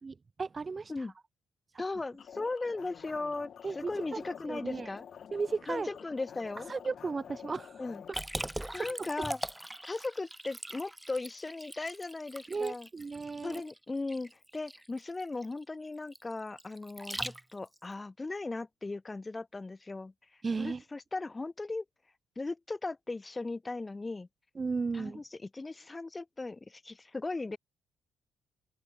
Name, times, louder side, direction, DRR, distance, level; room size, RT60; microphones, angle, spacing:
voice 1, 0.0-0.9 3.6-4.9 5.3-5.9 6.7-7.7 8.6-9.3 12.5-13.6 20.4-20.8 24.6-25.2, right 4 dB, 30° right, 0.5 m, -35 dB
voice 2, 1.8-5.1 5.7-6.7 7.8-8.0 8.7-9.4 9.8-12.9 13.4-20.1 20.6-21.8 22.4-24.3 24.9-27.6, left 3 dB, 20° left, 1.0 m, -37 dB
sound 1, 2.2-8.1, left 8 dB, 55° left, 2.5 m, -48 dB
Liquid, 8.1-17.8, right 1 dB, 5° right, 0.9 m, -41 dB
open air
cardioid pair, 90°, 0 cm